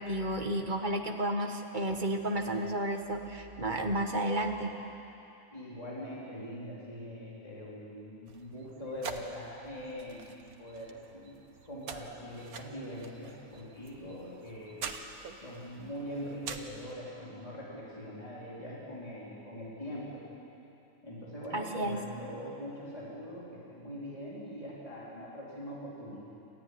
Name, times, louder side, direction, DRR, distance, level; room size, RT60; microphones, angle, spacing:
voice 1, 0.0-4.7 21.5-22.0, right 1 dB, 35° right, 4 dB, 1.8 m, -32 dB
voice 2, 5.5-14.9 15.3-20.2 21.0-26.2, equal, 25° left, -6 dB, 4.2 m, -42 dB
sound 1, 8.3-16.9, right 5 dB, 85° right, 1.7 m, -46 dB
28.5 x 14.0 x 9.7 m, 3.0 s
omnidirectional pair, 1.5 m